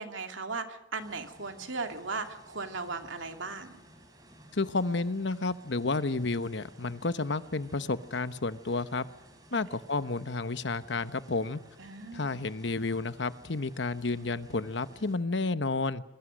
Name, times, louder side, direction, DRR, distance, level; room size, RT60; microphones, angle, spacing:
voice 1, 0.0-3.8 9.5-9.6 11.8-12.4, right 3 dB, 90° right, 6 dB, 2.6 m, -37 dB
sound 1, 1.0-15.2, right 1 dB, 20° right, 4.6 m, -56 dB
voice 2, 4.5-9.1 9.5-11.6 12.1-16.0, left 3 dB, 70° left, 13 dB, 1.0 m, -31 dB
27.0 x 22.0 x 6.4 m, 0.86 s
head